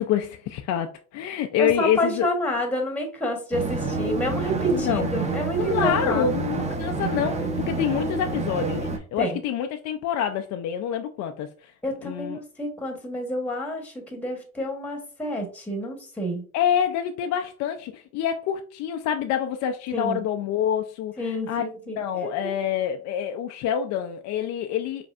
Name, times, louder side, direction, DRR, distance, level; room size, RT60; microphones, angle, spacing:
voice 1, 0.0-2.3 4.7-5.1 5.6-11.7 12.0-12.4 16.5-21.6 22.0-25.1, left 9 dB, 45° left, 0.5 m, -27 dB
voice 2, 1.6-6.3 9.2-9.4 11.8-16.4 19.9-20.2 21.2-22.5, equal, 5° left, 1.1 m, -29 dB
sound 1, 3.5-9.0, right 3 dB, 15° right, 0.8 m, -28 dB
5.0 x 3.2 x 2.4 m
hypercardioid pair, 80°, 43 cm